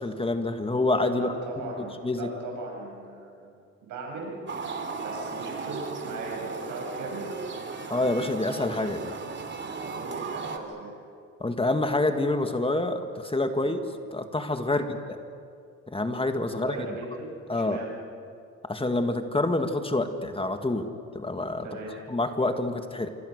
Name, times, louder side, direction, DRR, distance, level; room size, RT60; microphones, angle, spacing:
voice 1, 0.0-1.3 1.6-1.7 2.0-2.3 7.9-9.1 11.4-13.8 14.1-15.2 15.9-16.8 17.5-17.8 18.6-20.9 21.1-21.7 22.1-23.1, left 2 dB, 20° left, 7 dB, 1.9 m, -27 dB
voice 2, 1.1-3.5 3.8-4.4 5.0-7.2 9.8-10.9 13.6-13.8 14.7-15.0 16.6-17.9 21.6-21.9, right 3 dB, 85° right, -1 dB, 7.7 m, -38 dB
sound 1, 4.5-10.6, right 4 dB, 40° right, 2.7 m, -36 dB
26.0 x 25.5 x 6.7 m, 2.4 s
cardioid pair, 90°, 30 cm